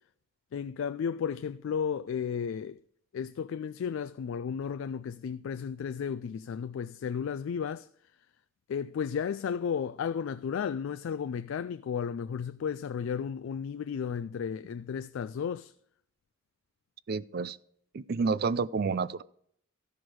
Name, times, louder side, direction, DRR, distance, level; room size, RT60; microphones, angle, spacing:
voice 1, 0.5-2.8 3.1-7.9 8.7-15.7, left 7 dB, 75° left, 0.3 m, -33 dB
voice 2, 17.1-17.6 17.9-19.2, right 5 dB, 50° right, 0.4 m, -29 dB
13.5 x 6.1 x 4.7 m
head